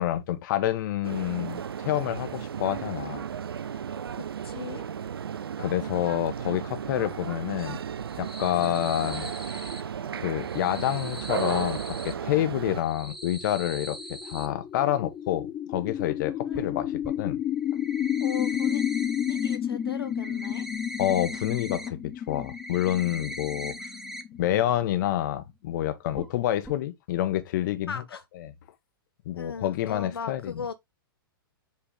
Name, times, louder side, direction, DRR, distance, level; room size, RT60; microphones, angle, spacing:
voice 1, 0.0-3.2 5.6-7.8 8.2-9.3 10.2-16.9 17.2-17.4 21.0-23.7 24.4-27.9 29.2-30.5, left 12 dB, 55° left, 1.2 m, -28 dB
sound 1, 1.0-12.8, right 8 dB, 80° right, 0.4 m, -35 dB
voice 2, 4.2-4.8 16.5-16.7 18.2-18.8 19.3-20.7 27.9-28.2 29.4-30.7, left 6 dB, 85° left, 0.6 m, -37 dB
sound 2, 8.0-9.8 10.4-12.1 12.7-14.5 16.5-16.6 17.0-17.1 17.6-19.6 19.9-21.9 22.2-24.2 24.5-24.6 25.0-25.1 26.1-26.3 26.6-26.7, equal, 5° right, 0.9 m, -41 dB
sound 3, 12.9-25.0, left 10 dB, 20° left, 0.5 m, -31 dB
7.4 x 3.6 x 3.7 m
figure-of-eight pair, 105°, 12 cm